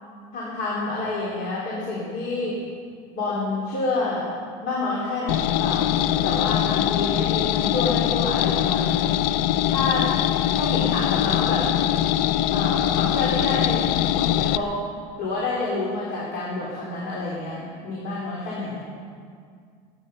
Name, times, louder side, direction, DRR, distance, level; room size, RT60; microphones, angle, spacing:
voice 1, 0.3-2.6 3.1-4.3 4.6-9.1 9.7-10.1 10.5-11.6 12.5-13.8 14.2-14.7 15.2-18.8, left 3 dB, 65° left, -5 dB, 3.7 m, -28 dB
sound 1, 5.3-14.6, left 12 dB, 90° left, 0.5 m, -22 dB
21.5 x 9.8 x 5.5 m, 2.2 s
cardioid pair, 145°, 16 cm